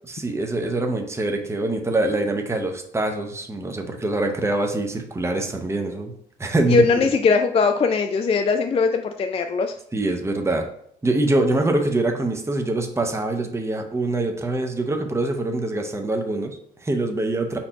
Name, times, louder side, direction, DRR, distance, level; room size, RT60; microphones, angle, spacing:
voice 1, 0.1-6.1 6.4-7.1 9.9-10.7 11.0-17.6, right 2 dB, 15° right, 4 dB, 0.7 m, -24 dB
voice 2, 6.7-9.7, left 4 dB, 30° left, 6 dB, 0.3 m, -20 dB
4.3 x 2.7 x 4.4 m, 0.66 s
cardioid pair, 90°, 20 cm